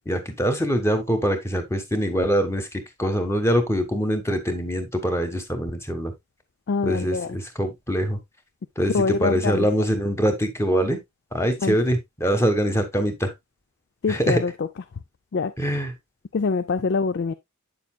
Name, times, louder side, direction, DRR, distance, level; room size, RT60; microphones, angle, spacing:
voice 1, 0.1-6.1 6.8-8.2 8.8-11.0 11.3-13.3 14.1-14.4 15.6-15.9, equal, 10° left, 1.3 m, -24 dB
voice 2, 6.7-7.4 8.9-9.7 11.6-11.8 14.0-14.7 15.3-15.5 16.3-17.3, left 4 dB, 50° left, 0.4 m, -24 dB
8.5 x 6.9 x 2.2 m
head